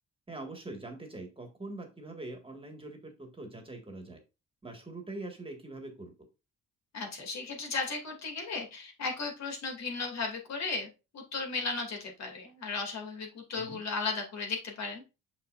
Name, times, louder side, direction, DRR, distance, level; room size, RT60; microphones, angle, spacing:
voice 1, 0.3-4.2 4.6-6.1 13.6-13.8, right 2 dB, 20° right, 4 dB, 1.7 m, -43 dB
voice 2, 6.9-15.0, left 4 dB, 60° left, 1 dB, 2.5 m, -35 dB
6.5 x 5.9 x 2.5 m, 0.28 s
cardioid pair, 90°, 30 cm